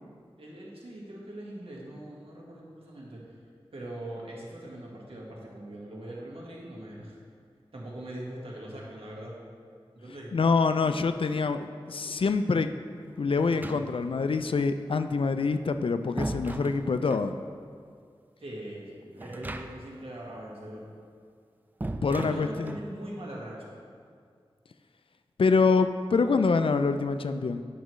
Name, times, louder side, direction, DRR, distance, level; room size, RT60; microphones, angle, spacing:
voice 1, 0.4-3.2 3.7-7.2 7.7-9.3 9.9-10.3 18.4-20.9 22.1-23.7, right 1 dB, 70° right, -4 dB, 1.6 m, -41 dB
voice 2, 10.3-12.7 13.2-17.4 22.0-22.8 25.4-27.6, left 4 dB, 65° left, 9 dB, 0.4 m, -25 dB
sound 1, 13.4-14.2 15.5-17.3 19.2-20.0 20.3-20.4 21.8-22.9, right 1 dB, 20° right, 0.4 m, -37 dB
10.0 x 6.2 x 3.1 m, 2.1 s
wide cardioid pair, 70°, 10 cm